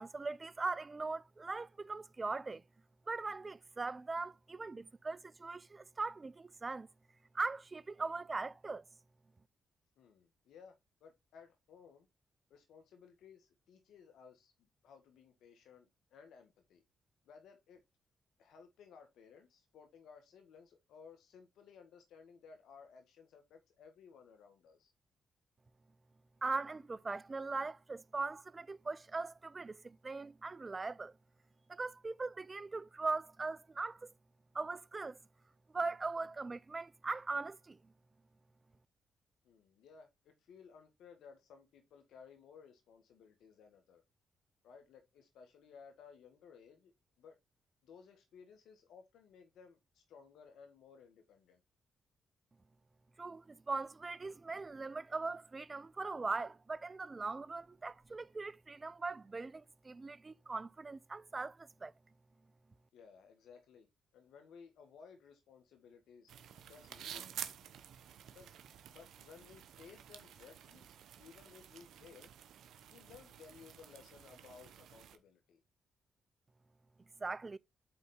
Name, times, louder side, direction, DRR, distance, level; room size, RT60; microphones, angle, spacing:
voice 1, 0.0-2.6 3.1-6.9 7.3-8.8 26.4-31.1 31.7-34.1 34.5-35.2 35.7-37.8 53.2-61.9 77.2-77.6, right 3 dB, 30° right, 0.5 m, -40 dB
voice 2, 10.0-12.1 12.5-16.8 17.3-17.8 18.4-24.9 39.4-44.0 44.6-47.4 47.8-51.6 62.9-67.7 68.3-68.5 68.9-70.9 71.2-72.3 72.9-75.6, left 6 dB, 80° left, 1.8 m, -59 dB
sound 1, 66.3-75.2, right 9 dB, 80° right, 0.9 m, -51 dB
8.9 x 4.1 x 3.8 m
cardioid pair, 65°, 0 cm